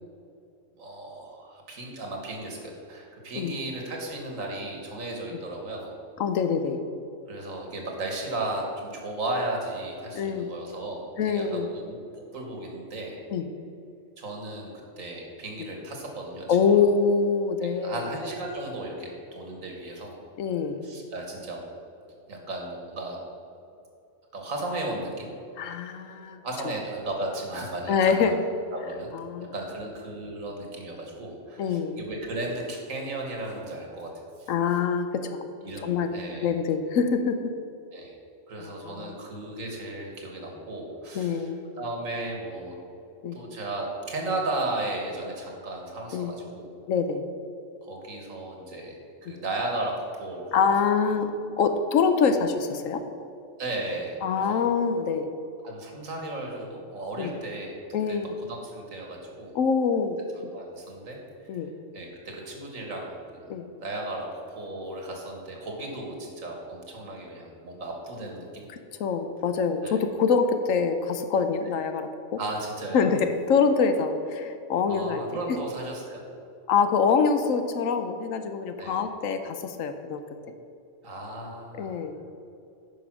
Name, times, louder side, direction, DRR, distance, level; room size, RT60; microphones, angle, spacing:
voice 1, 0.8-5.9 7.3-13.2 14.2-16.8 17.6-20.2 20.8-21.6 22.3-23.2 24.3-25.3 26.4-28.4 28.7-29.1 29.5-34.1 34.4-34.5 35.6-36.5 37.9-38.2 38.5-41.5 41.8-42.8 43.3-46.7 47.8-49.0 49.2-50.7 53.6-54.7 55.6-57.8 58.1-58.2 58.5-59.6 60.5-61.5 61.9-63.5 63.8-68.6 69.8-70.0 72.4-73.0 74.9-76.2 78.8-78.9 81.0-82.0, right 2 dB, 85° right, 1 dB, 1.9 m, -35 dB
voice 2, 6.2-6.8 10.1-10.5 11.2-11.7 13.3-13.4 16.5-18.0 20.4-20.8 25.6-26.4 27.9-28.4 29.1-29.5 31.6-32.0 34.5-35.4 35.8-36.1 36.4-37.5 38.6-39.2 41.1-41.7 43.2-43.4 46.1-46.3 46.9-47.3 50.5-53.0 54.2-55.3 57.2-57.3 57.9-58.4 59.5-60.5 61.5-61.7 63.5-63.7 69.0-72.4 72.9-75.2 75.5-75.6 76.7-80.2 81.8-82.2, left 5 dB, 80° left, 8 dB, 1.1 m, -25 dB
9.2 x 5.3 x 6.0 m, 2.6 s
omnidirectional pair, 1.4 m